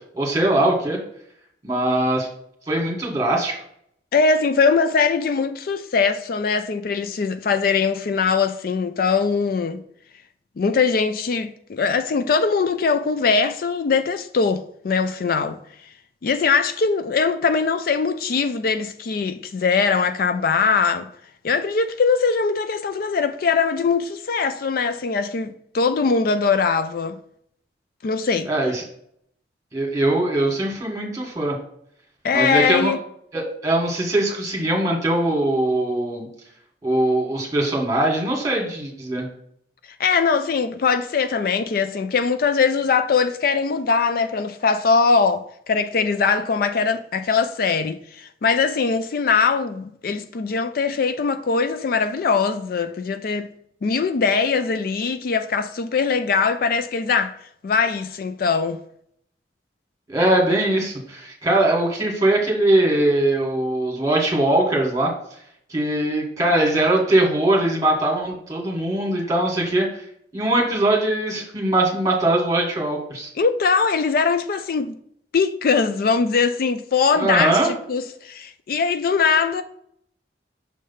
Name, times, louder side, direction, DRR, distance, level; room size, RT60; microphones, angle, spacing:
voice 1, 0.1-1.0 1.6-2.3 2.7-3.6 28.5-28.8 29.7-31.6 32.3-32.9 33.3-36.3 36.8-39.3 60.1-65.1 65.7-70.0 70.3-73.3 77.2-77.7, right 1 dB, 20° right, 1.7 m, -21 dB
voice 2, 4.1-9.8 10.6-15.6 16.2-21.1 21.4-27.2 28.0-28.5 32.2-33.0 40.0-53.5 53.8-57.4 57.6-58.8 73.4-74.9 75.3-79.6, left 5 dB, 55° left, 0.4 m, -21 dB
6.4 x 3.3 x 5.5 m
head